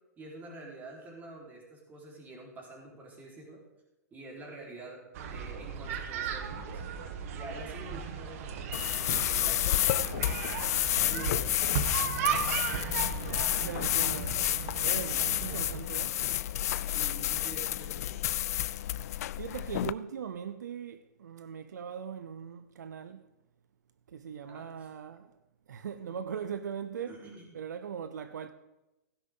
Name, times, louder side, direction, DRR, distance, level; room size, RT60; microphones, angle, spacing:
voice 1, 0.2-3.6 4.1-5.0 5.3-6.8 7.3-10.5 11.0-11.6 16.9-18.2 24.5-24.9 26.0-26.2 27.1-27.5, right 2 dB, 20° right, 4.1 m, -47 dB
sound 1, 5.1-15.8, right 7 dB, 55° right, 1.3 m, -36 dB
sound 2, 8.7-19.9, left 13 dB, 60° left, 0.4 m, -30 dB
voice 2, 13.6-14.4 14.8-16.2 19.4-23.2 24.1-25.4 25.7-27.2 27.5-28.5, right 7 dB, 80° right, 0.7 m, -40 dB
16.0 x 10.0 x 3.8 m
hypercardioid pair, 130°, 9 cm